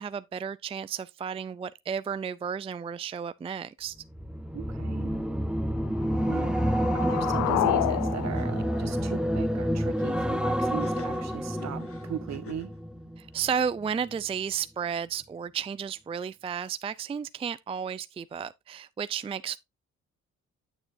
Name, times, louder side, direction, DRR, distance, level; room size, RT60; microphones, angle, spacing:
voice 1, 0.0-4.0 13.2-19.6, right 7 dB, 20° right, 0.4 m, -33 dB
sound 1, 4.1-13.5 13.8-14.2, equal, 5° right, 0.8 m, -29 dB
voice 2, 4.5-5.1 6.3-6.5 6.9-12.7, right 9 dB, 60° right, 1.5 m, -38 dB
sound 2, 5.9-9.9, left 15 dB, 65° left, 0.4 m, -31 dB
sound 3, 8.0-8.1 8.3-8.5 10.7-12.8, left 6 dB, 50° left, 1.8 m, -47 dB
8.9 x 7.0 x 2.6 m
cardioid pair, 90°, 30 cm